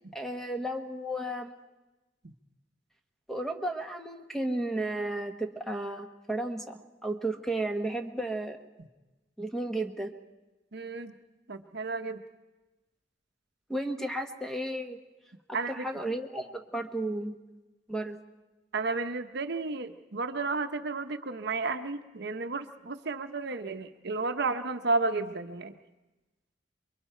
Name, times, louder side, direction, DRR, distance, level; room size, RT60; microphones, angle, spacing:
voice 1, 0.1-1.5 3.3-8.6 9.4-10.1 13.7-15.0 15.7-17.4 17.9-18.2, right 1 dB, ahead, 4 dB, 1.4 m, -33 dB
voice 2, 10.7-11.1 11.5-12.2 15.5-15.9 18.7-25.8, right 3 dB, 65° right, 8 dB, 0.9 m, -32 dB
28.0 x 22.5 x 4.5 m, 1.1 s
head